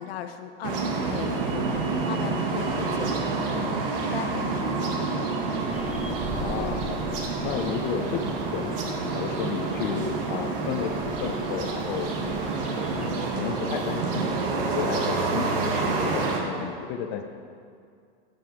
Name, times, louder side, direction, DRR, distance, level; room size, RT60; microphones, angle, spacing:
voice 1, 0.0-5.5 15.6-15.8, left 8 dB, 85° left, 8 dB, 0.8 m, -38 dB
sound 1, 0.6-16.4, right 3 dB, 70° right, 1.6 m, -28 dB
sound 2, 5.7-13.4, equal, 5° right, 0.6 m, -42 dB
voice 2, 6.3-8.8 9.1-12.4 12.9-14.3 14.7-17.2, left 7 dB, 35° left, 5 dB, 0.7 m, -33 dB
16.5 x 5.6 x 4.6 m, 2.3 s
supercardioid pair, 160°, 30 cm